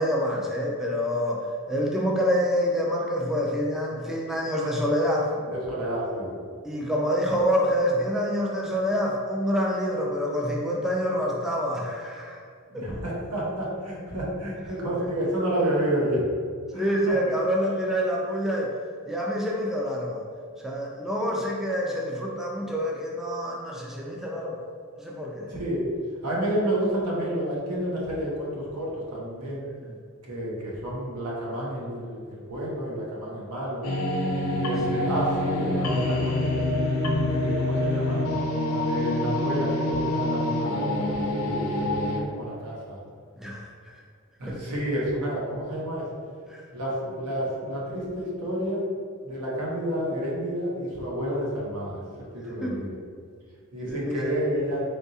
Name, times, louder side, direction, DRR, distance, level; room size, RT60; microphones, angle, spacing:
voice 1, 0.0-5.3 6.6-12.4 12.7-12.9 16.7-18.7 19.1-20.2 20.6-24.6 25.0-25.5 29.8-30.0 43.4-44.0 44.4-44.6 46.5-46.6 52.6-52.8 53.9-54.3, equal, ahead, -3 dB, 0.3 m, -27 dB
voice 2, 5.4-6.3 12.7-16.2 16.7-17.2 25.5-25.9 26.2-29.6 30.3-33.8 34.5-36.7 37.2-38.2 38.7-43.0 44.4-46.0 46.7-48.8 49.2-53.0 53.7-54.8, right 1 dB, 85° right, -5 dB, 1.1 m, -30 dB
sound 1, 33.8-42.2, left 1 dB, 70° left, 0.6 m, -26 dB
3.9 x 3.5 x 2.7 m, 2.1 s
head